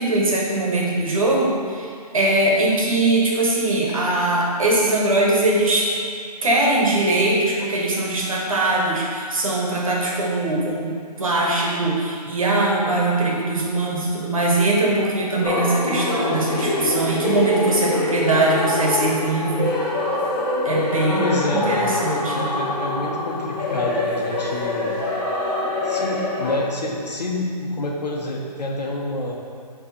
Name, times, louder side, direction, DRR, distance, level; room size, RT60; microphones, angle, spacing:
voice 1, 0.0-5.9 6.4-19.7 20.6-22.5, right 2 dB, 55° right, -3 dB, 1.4 m, -21 dB
sound 1, 15.4-26.6, left 2 dB, 30° left, 1.1 m, -24 dB
voice 2, 21.0-21.9 22.3-24.9 25.8-29.3, left 1 dB, 75° left, -2 dB, 1.3 m, -28 dB
7.3 x 3.4 x 4.4 m, 2.2 s
hypercardioid pair, 180°, 21 cm